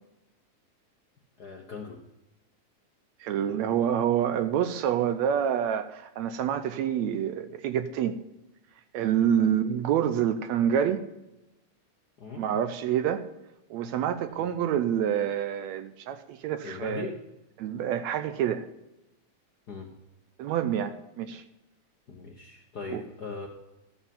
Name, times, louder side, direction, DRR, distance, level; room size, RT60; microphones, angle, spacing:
voice 1, 1.4-2.0 9.3-9.5 12.2-12.5 14.3-14.5 16.6-17.2 19.7-19.9 22.1-23.5, left 4 dB, 55° left, 1.1 m, -39 dB
voice 2, 3.2-8.2 8.9-11.0 12.4-13.3 13.7-17.1 17.6-18.7 20.4-21.4 22.9-23.0, right 9 dB, 75° right, 1.8 m, -27 dB
13.0 x 8.1 x 5.4 m
omnidirectional pair, 3.4 m